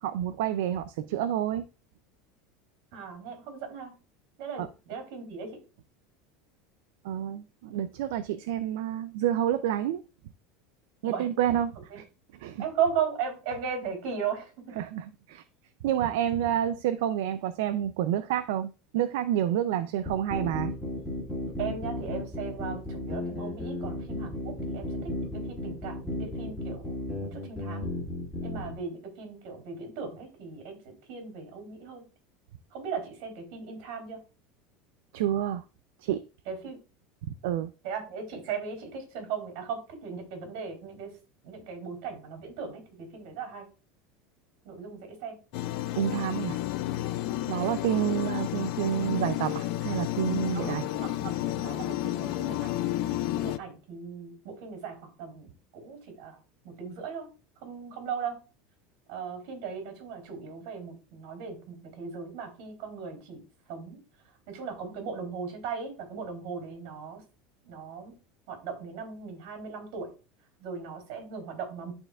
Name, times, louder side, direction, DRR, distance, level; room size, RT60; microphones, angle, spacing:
voice 1, 0.0-1.6 4.6-4.7 7.0-10.0 11.0-12.0 12.4-12.6 14.8-15.4 15.8-20.7 35.1-35.6 36.0-36.2 37.4-37.7 46.0-46.6 47.5-50.8, right 10 dB, 75° right, 0.4 m, -29 dB
voice 2, 2.9-4.0 4.4-5.5 11.0-11.3 11.9-12.0 12.6-14.7 21.6-27.9 28.4-32.0 32.7-34.2 36.5-36.8 37.8-41.1 41.4-43.7 44.6-45.4 50.5-52.7 53.3-56.4 56.6-57.3 57.6-58.4 59.1-63.4 63.7-64.0 64.5-67.2 67.6-68.1 68.5-70.1 70.6-71.9, right 6 dB, 60° right, 3.3 m, -37 dB
sound 1, 20.0-28.7, left 1 dB, 5° left, 2.4 m, -34 dB
sound 2, 45.5-53.6, left 14 dB, 55° left, 0.4 m, -31 dB
11.0 x 4.3 x 2.4 m
supercardioid pair, 155°, 0 cm